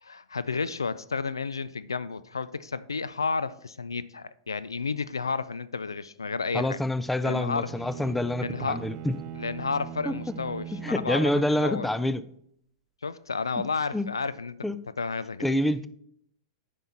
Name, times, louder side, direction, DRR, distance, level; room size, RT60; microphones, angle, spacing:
voice 1, 0.0-6.8 7.2-7.7 8.4-8.9 9.3-11.9 13.0-14.6 15.0-15.5, left 4 dB, 85° left, 0.4 m, -31 dB
voice 2, 6.5-9.1 10.1-10.2 10.8-12.2 13.9-14.1 14.6-14.8 15.4-15.9, left 1 dB, 5° left, 0.4 m, -27 dB
Bowed string instrument, 7.5-12.3, right 11 dB, 40° right, 0.6 m, -41 dB
9.1 x 5.5 x 4.3 m
hypercardioid pair, 100°, 2 cm